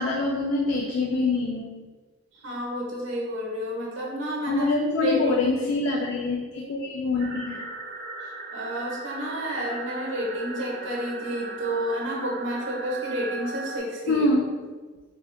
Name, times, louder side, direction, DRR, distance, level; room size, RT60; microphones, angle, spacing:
voice 1, 0.0-1.8 4.5-7.6 14.1-14.5, left 2 dB, 85° left, -1 dB, 0.3 m, -25 dB
voice 2, 2.3-4.7 5.0-5.5 8.2-14.3, right 1 dB, 70° right, -2 dB, 0.8 m, -30 dB
sound 1, 7.2-13.8, right 3 dB, 45° right, 0.4 m, -38 dB
3.7 x 2.1 x 2.5 m, 1.4 s
head